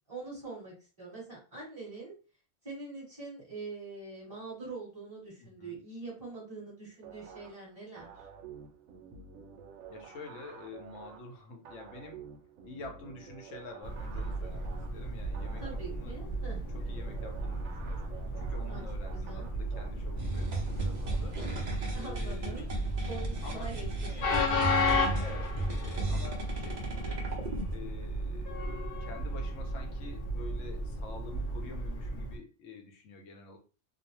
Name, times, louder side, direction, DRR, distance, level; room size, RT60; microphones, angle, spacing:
voice 1, 0.1-2.2 2.6-8.2 15.6-16.6 18.7-18.8 19.1-19.5 21.6-22.7 23.1-25.1, right 3 dB, 25° right, -6 dB, 1.2 m, -44 dB
voice 2, 5.4-5.8 9.9-12.2 12.6-16.2 16.7-18.1 18.4-21.4 22.0-22.6 23.4-23.7 25.2-25.6 25.8-27.3 27.7-28.7 29.0-33.6, left 3 dB, 75° left, 3 dB, 1.0 m, -47 dB
sound 1, 7.0-21.8, right 5 dB, 90° right, 1.0 m, -50 dB
Train, 13.8-32.4, left 1 dB, 55° left, 0.7 m, -34 dB
sound 2, 20.2-27.7, right 1 dB, 50° right, 0.5 m, -36 dB
2.6 x 2.0 x 2.9 m, 0.34 s
omnidirectional pair, 1.4 m